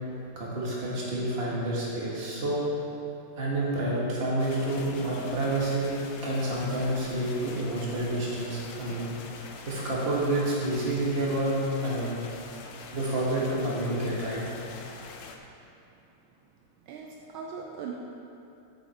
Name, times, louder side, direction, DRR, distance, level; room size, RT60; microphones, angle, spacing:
voice 1, 0.3-2.6 3.4-6.0 6.2-9.1 9.7-11.6 11.8-12.2 12.9-14.4, right 1 dB, 30° right, -6 dB, 1.5 m, -29 dB
sound 1, 4.4-15.4, left 5 dB, 70° left, 1.2 m, -45 dB
voice 2, 16.9-17.9, right 6 dB, 75° right, -1 dB, 1.4 m, -39 dB
7.4 x 6.6 x 4.2 m, 2.8 s
omnidirectional pair, 2.4 m